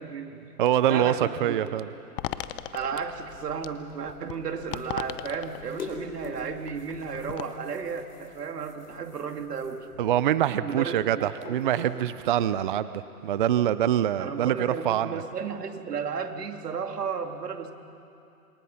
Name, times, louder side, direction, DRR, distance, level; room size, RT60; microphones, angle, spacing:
voice 1, 0.0-0.5 0.8-1.6 2.7-9.9 10.6-11.6 14.2-17.7, right 6 dB, 85° right, 5 dB, 2.4 m, -34 dB
voice 2, 0.6-1.1 1.4-1.9 10.0-12.9 13.2-15.1, right 11 dB, 35° right, 14 dB, 0.4 m, -24 dB
sound 1, 2.2-7.4, left 12 dB, 35° left, 0.8 m, -39 dB
sound 2, 3.2-12.5, left 4 dB, 90° left, 4.6 m, -46 dB
27.5 x 23.5 x 5.7 m, 2.7 s
hypercardioid pair, 145°, 46 cm